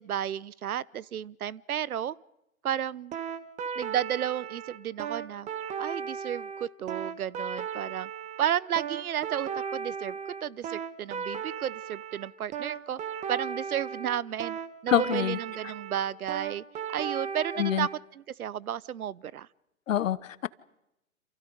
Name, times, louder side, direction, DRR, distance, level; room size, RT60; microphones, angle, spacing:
voice 1, 0.0-2.1 2.6-3.2 3.8-5.5 5.8-8.1 8.4-13.0 13.3-16.6 16.9-17.9 18.2-19.5, right 10 dB, 75° right, 0.9 m, -32 dB
sound 1, 3.1-18.0, right 7 dB, 15° right, 1.3 m, -36 dB
voice 2, 14.9-15.4 17.6-17.9 19.9-20.5, left 11 dB, 60° left, 1.1 m, -26 dB
29.0 x 28.0 x 5.3 m
hypercardioid pair, 140°, 44 cm